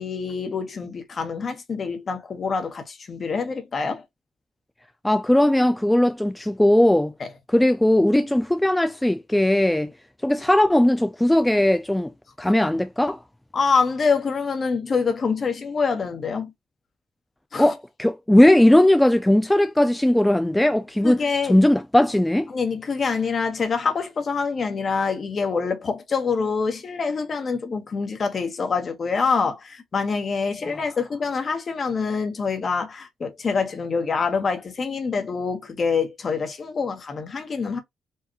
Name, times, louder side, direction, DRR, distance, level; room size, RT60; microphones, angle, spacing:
voice 1, 0.0-4.0 7.2-7.3 13.5-16.5 17.5-17.7 21.0-21.6 22.5-37.8, left 5 dB, 40° left, 1.2 m, -25 dB
voice 2, 5.0-7.1 7.5-9.9 10.2-12.1 12.4-13.2 17.6-21.2 21.5-22.5, left 1 dB, 5° left, 0.4 m, -18 dB
4.6 x 2.5 x 2.9 m
cardioid pair, 90°, 0 cm